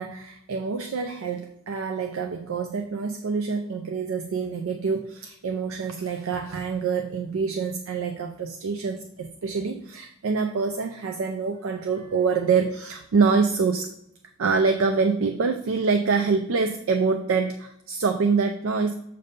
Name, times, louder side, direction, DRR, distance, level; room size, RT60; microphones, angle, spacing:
voice 1, 0.0-13.9 14.4-18.9, right 5 dB, 85° right, 5 dB, 0.4 m, -25 dB
6.7 x 2.7 x 5.3 m, 0.77 s
head